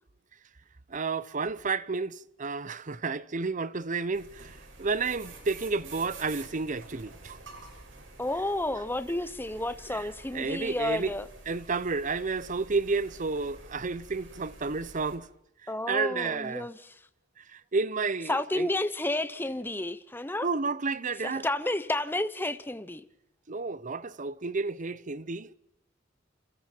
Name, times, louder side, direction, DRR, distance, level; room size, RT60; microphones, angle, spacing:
voice 1, 0.9-7.4 9.9-11.1 11.5-15.3 15.6-16.7 17.4-18.7 20.4-21.5 23.5-25.5, right 4 dB, 45° right, 0.8 m, -31 dB
sound 1, 4.1-15.2, right 3 dB, 85° right, 6.3 m, -49 dB
voice 2, 8.2-11.3 15.7-16.9 18.3-20.5 21.2-23.0, left 1 dB, 10° left, 1.0 m, -31 dB
28.5 x 27.5 x 4.6 m
head